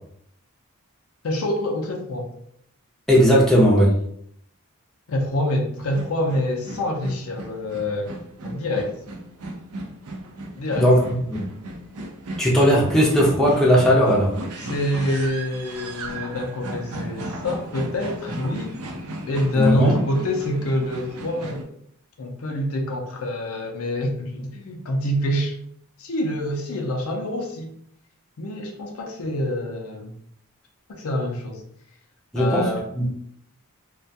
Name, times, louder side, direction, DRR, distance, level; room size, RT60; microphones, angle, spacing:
voice 1, 1.2-2.3 5.1-8.2 8.4-9.0 10.6-10.9 14.6-18.7 19.3-21.6 22.2-25.5 26.0-27.7 28.4-30.1 30.9-31.6 32.3-32.9, left 1 dB, 70° left, 2 dB, 0.5 m, -26 dB
voice 2, 3.1-3.9 10.7-11.0 11.3-11.4 12.4-14.3 19.5-20.0 32.3-32.7 32.9-33.1, equal, ahead, -5 dB, 0.5 m, -17 dB
sound 1, 5.8-21.6, right 1 dB, 80° right, 0.5 m, -36 dB
2.3 x 2.2 x 2.6 m, 0.68 s
head